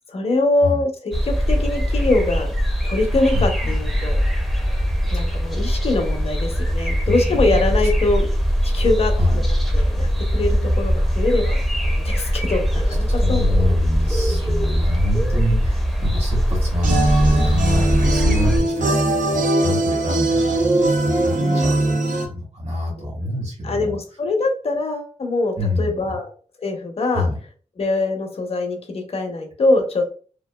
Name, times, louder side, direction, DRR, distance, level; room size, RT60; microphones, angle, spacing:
voice 1, 0.1-2.5 2.8-4.2 5.1-8.3 8.6-9.1 9.5-10.1 10.3-13.6 14.3-14.6 21.4-21.6 23.2-23.3 23.6-26.3 26.6-27.3 27.8-30.0, left 2 dB, 55° left, 4 dB, 0.7 m, -23 dB
sound 1, 1.1-18.6, equal, ahead, 0.5 m, -21 dB
voice 2, 7.1-7.6 9.2-9.5 13.2-20.7 21.0-21.9 22.3-23.9 25.6-25.9 27.1-27.4, left 1 dB, 55° right, -3 dB, 1.4 m, -25 dB
sound 2, 16.8-22.3, right 2 dB, 90° right, 0.6 m, -20 dB
2.9 x 2.3 x 2.2 m, 0.40 s
wide cardioid pair, 115°, 13 cm